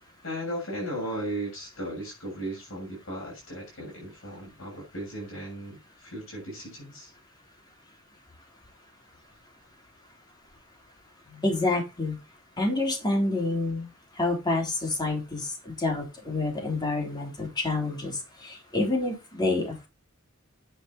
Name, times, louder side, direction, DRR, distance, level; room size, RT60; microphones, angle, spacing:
voice 1, 0.2-7.1, right 1 dB, 70° left, 7.1 m, -36 dB
voice 2, 11.3-12.2 12.6-13.9 14.2-18.1 18.4-19.9, left 2 dB, 20° left, 3.5 m, -28 dB
9.6 x 6.0 x 4.2 m
head